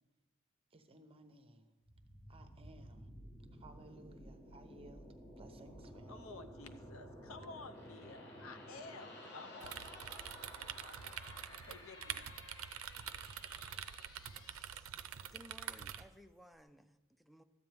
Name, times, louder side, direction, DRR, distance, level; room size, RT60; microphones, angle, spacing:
voice 1, 0.7-1.7 2.3-3.1 3.5-5.0 5.4-6.3, right 2 dB, 30° right, 8 dB, 0.8 m, -58 dB
sound 1, 1.8-15.6, equal, 20° left, 1.2 m, -55 dB
voice 2, 6.1-9.8 10.4-12.3, left 3 dB, 75° left, 8 dB, 0.7 m, -53 dB
sound 2, 7.7-14.8, left 3 dB, 55° left, 1.1 m, -58 dB
sound 3, 9.6-16.0, right 9 dB, 80° right, 0.5 m, -46 dB
voice 3, 15.3-17.4, equal, ahead, 8 dB, 0.4 m, -59 dB
13.0 x 9.2 x 3.5 m, 1.1 s
head